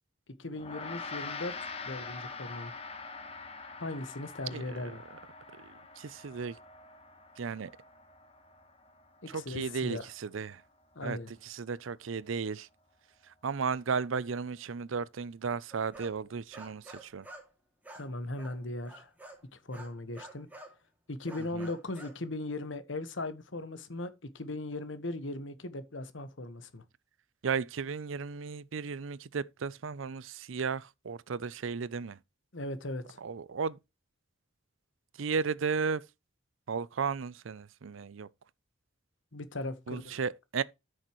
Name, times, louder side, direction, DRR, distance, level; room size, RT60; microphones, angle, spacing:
voice 1, 0.4-2.8 3.8-5.0 9.2-10.1 10.9-11.3 17.9-19.1 19.5-20.5 21.1-26.8 32.5-33.2 39.3-40.2, left 2 dB, 75° left, 1.3 m, -38 dB
Gong, 0.6-10.1, left 4 dB, 30° left, 1.4 m, -45 dB
voice 2, 4.5-4.8 6.0-6.6 7.4-7.7 9.3-10.6 11.0-11.2 11.4-12.7 13.4-17.3 21.5-21.7 27.4-32.2 33.2-33.8 35.2-36.0 36.7-38.3 39.9-40.6, right 5 dB, 80° right, 0.5 m, -34 dB
sound 1, 15.7-17.5 17.8-19.5 19.7-20.8 21.3-22.2, right 1 dB, 10° right, 2.4 m, -50 dB
13.0 x 6.5 x 3.1 m
head